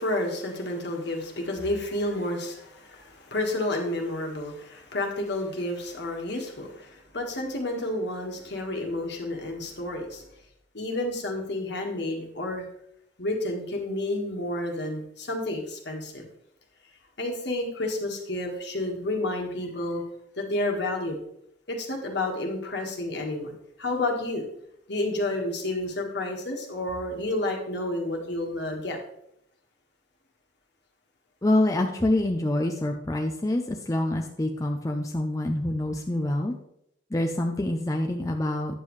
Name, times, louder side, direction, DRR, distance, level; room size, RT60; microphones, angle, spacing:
voice 1, 0.0-10.2 10.7-12.6 13.2-16.3 17.2-20.1 20.4-21.2 21.7-24.4 24.9-29.0, left 1 dB, 60° left, 2 dB, 1.5 m, -30 dB
voice 2, 31.4-36.5 37.1-38.7, left 1 dB, 15° left, 3 dB, 0.5 m, -26 dB
9.4 x 7.3 x 3.1 m, 0.75 s
head